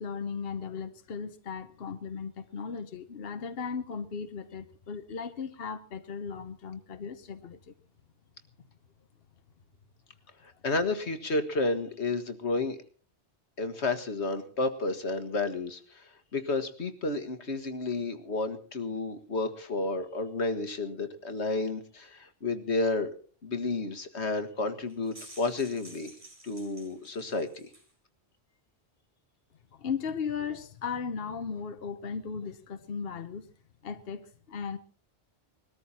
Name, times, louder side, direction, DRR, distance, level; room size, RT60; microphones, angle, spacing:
voice 1, 0.0-7.7 29.7-33.5 33.8-34.8, left 6 dB, 65° left, 10 dB, 1.1 m, -36 dB
voice 2, 10.4-12.8 13.6-23.1 23.4-26.1 26.4-27.7, left 3 dB, 80° left, 9 dB, 1.9 m, -31 dB
sound 1, 24.9-27.9, right 1 dB, 30° right, 4.7 m, -51 dB
21.0 x 13.5 x 4.2 m, 0.41 s
omnidirectional pair, 1.1 m